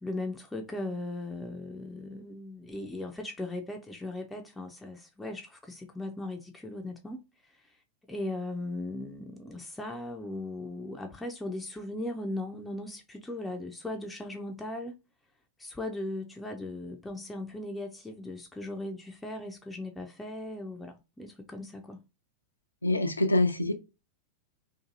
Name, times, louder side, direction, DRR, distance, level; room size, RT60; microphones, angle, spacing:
voice 1, 0.0-7.2 7.5-7.6 8.1-14.9 15.6-22.0, left 2 dB, 10° left, 0.4 m, -38 dB
voice 2, 22.8-23.7, left 2 dB, 80° left, 0.3 m, -25 dB
2.6 x 2.4 x 2.5 m
figure-of-eight pair, 90°, 0 cm